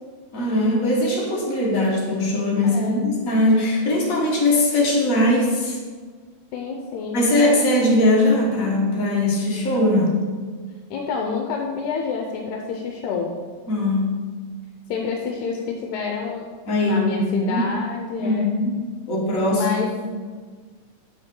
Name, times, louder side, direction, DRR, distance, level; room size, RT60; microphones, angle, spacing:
voice 1, 0.3-5.8 7.1-10.2 13.7-14.0 16.7-17.7 18.2-18.8 19.1-19.6, left 1 dB, 50° left, -3 dB, 1.0 m, -20 dB
voice 2, 2.6-3.0 6.5-7.3 10.9-13.3 14.9-16.5 16.8-18.5 19.5-19.9, left 5 dB, 75° left, 1 dB, 2.0 m, -28 dB
7.5 x 6.7 x 3.7 m, 1.5 s
omnidirectional pair, 3.7 m